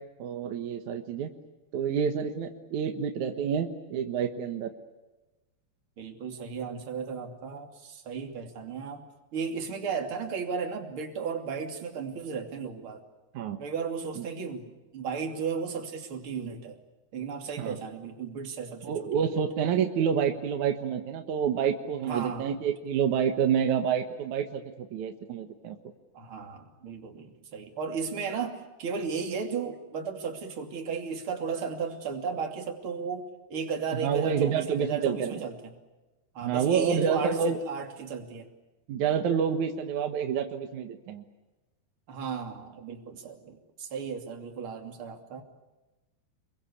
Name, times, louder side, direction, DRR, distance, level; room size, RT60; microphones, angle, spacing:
voice 1, 0.2-1.3 1.7-4.7 13.3-13.6 14.2-14.3 17.6-17.8 18.8-25.8 33.9-35.4 36.4-37.6 38.9-41.2, right 7 dB, 60° right, 6 dB, 2.1 m, -28 dB
voice 2, 6.0-9.0 9.3-13.0 13.6-16.8 17.1-19.1 22.1-22.5 26.1-35.7 36.3-38.5 42.1-45.4, right 5 dB, 35° right, 4 dB, 3.0 m, -35 dB
27.5 x 22.5 x 8.5 m, 1.1 s
omnidirectional pair, 5.0 m